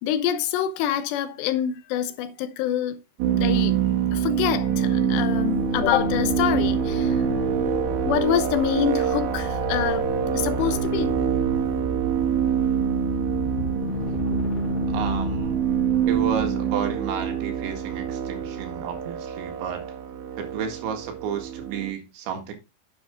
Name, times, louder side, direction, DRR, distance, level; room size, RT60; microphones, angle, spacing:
voice 1, 0.0-3.0 3.3-3.7 4.1-7.2 8.1-10.1 10.3-11.2, left 10 dB, 80° left, 3.0 m, -26 dB
sound 1, 3.2-21.9, right 8 dB, 65° right, 3.1 m, -25 dB
sound 2, 5.5-16.4, left 3 dB, 30° left, 3.1 m, -34 dB
voice 2, 14.9-15.6 16.1-19.8 20.4-22.5, right 7 dB, 85° right, 4.1 m, -32 dB
9.7 x 7.4 x 3.6 m
omnidirectional pair, 5.1 m